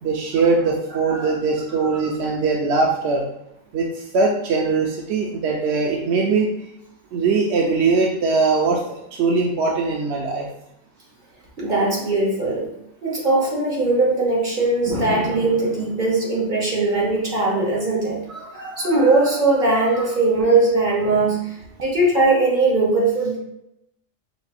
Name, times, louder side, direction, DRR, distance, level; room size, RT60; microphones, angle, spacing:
voice 1, 0.0-3.2 3.7-6.5 7.1-10.5, right 4 dB, 65° right, -1 dB, 0.8 m, -21 dB
voice 2, 11.6-12.7 13.0-23.4, right 2 dB, 40° right, -4 dB, 1.2 m, -20 dB
5.1 x 3.0 x 2.4 m, 0.83 s
omnidirectional pair, 1.4 m